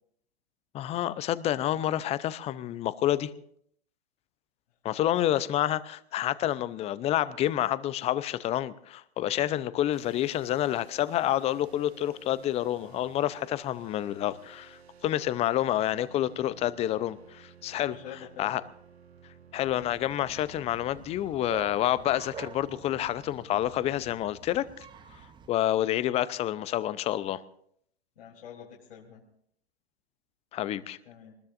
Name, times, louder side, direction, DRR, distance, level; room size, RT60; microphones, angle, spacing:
voice 1, 0.7-3.3 4.8-18.0 18.4-18.6 19.5-24.7 25.5-27.4 30.5-31.0, left 12 dB, 20° left, 0.6 m, -28 dB
sound 1, 9.9-24.2, right 7 dB, 80° right, 1.9 m, -55 dB
voice 2, 17.7-18.6 28.2-29.2 30.6-31.3, left 9 dB, 60° left, 3.5 m, -47 dB
Bark, 19.6-25.5, right 7 dB, 15° right, 0.8 m, -48 dB
25.5 x 20.5 x 2.6 m
figure-of-eight pair, 110°, 31 cm